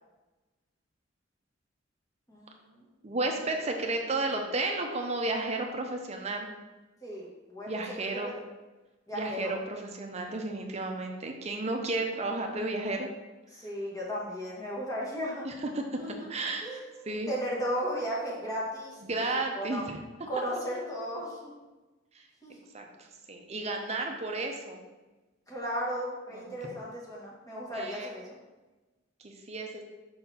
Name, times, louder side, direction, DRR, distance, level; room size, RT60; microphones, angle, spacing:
voice 1, 2.3-2.9 7.0-7.7 8.1-8.3 9.1-9.5 13.5-15.5 16.0-16.3 16.6-19.8 20.3-21.5 22.4-22.6 25.5-28.3, equal, 20° left, -5 dB, 1.4 m, -35 dB
voice 2, 3.0-6.5 7.7-8.3 9.1-13.1 15.4-15.8 16.3-17.3 19.0-20.0 22.1-22.2 22.7-24.8 26.3-26.5 27.7-28.1 29.2-29.8, right 2 dB, 35° right, 3 dB, 0.7 m, -33 dB
5.7 x 4.1 x 4.1 m, 1.1 s
head